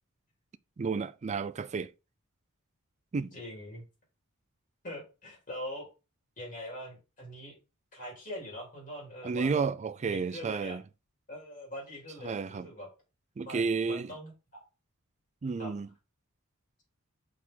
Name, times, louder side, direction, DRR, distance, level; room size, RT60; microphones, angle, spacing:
voice 1, 0.8-1.9 3.1-3.3 9.2-10.8 12.2-12.7 13.4-14.1 15.4-15.9, right 5 dB, 30° right, 0.3 m, -31 dB
voice 2, 3.3-3.8 4.8-5.9 6.4-7.6 7.9-9.6 10.0-10.8 11.3-12.9 13.4-14.6 15.6-15.7, left 1 dB, 40° left, 3.8 m, -43 dB
6.0 x 4.7 x 3.9 m
head